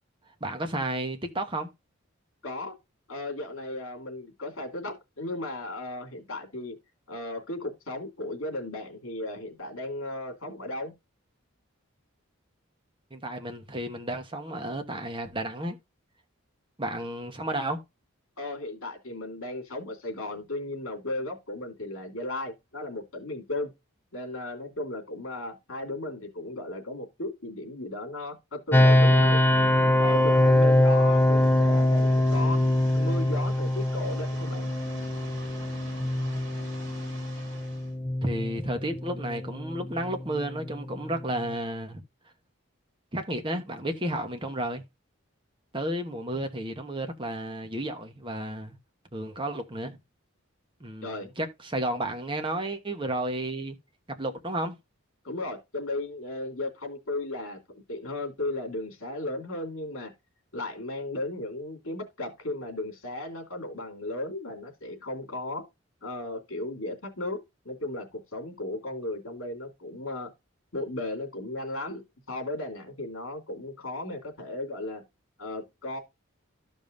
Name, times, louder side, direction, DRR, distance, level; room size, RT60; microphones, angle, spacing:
voice 1, 0.4-1.7 13.1-15.8 16.8-17.8 38.2-42.0 43.1-44.8 45.7-48.8 49.1-50.0 50.8-53.8 54.2-54.7, right 1 dB, 25° right, 1.1 m, -32 dB
voice 2, 2.4-2.7 3.1-6.8 7.1-10.9 18.4-23.7 24.1-29.4 30.0-32.6 32.9-34.7 51.0-51.3 55.2-57.6 57.9-60.1 60.5-65.6 66.0-67.4 67.6-70.3 70.7-75.0 75.4-76.0, left 2 dB, 75° left, 2.8 m, -35 dB
sound 1, 28.7-41.5, left 1 dB, 10° left, 0.4 m, -24 dB
sound 2, 29.9-37.9, right 2 dB, 60° right, 2.7 m, -47 dB
13.5 x 5.3 x 2.6 m
head